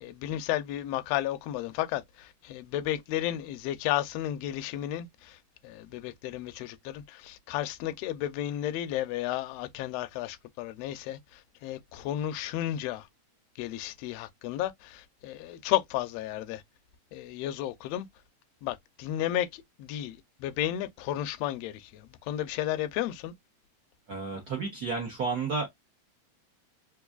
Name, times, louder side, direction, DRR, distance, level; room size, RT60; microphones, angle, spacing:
voice 1, 0.0-5.4 5.6-13.1 13.6-16.6 17.1-18.1 18.6-23.3, left 13 dB, 80° left, 1.5 m, -33 dB
voice 2, 24.1-25.7, right 4 dB, 70° right, 0.9 m, -31 dB
4.6 x 2.5 x 2.3 m
omnidirectional pair, 3.3 m